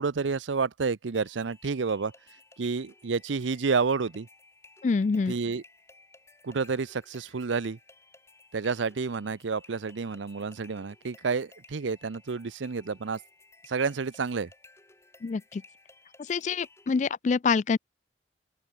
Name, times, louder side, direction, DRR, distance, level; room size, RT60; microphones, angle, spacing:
voice 1, 0.0-2.1 2.6-4.3 5.3-5.6 6.4-7.8 8.5-13.2 13.7-14.5, right 4 dB, 85° right, 0.6 m, -29 dB
sound 1, 1.1-17.1, left 3 dB, 15° left, 6.1 m, -57 dB
voice 2, 4.8-5.3 15.2-15.6 16.3-17.8, left 5 dB, 40° left, 0.3 m, -26 dB
open air
head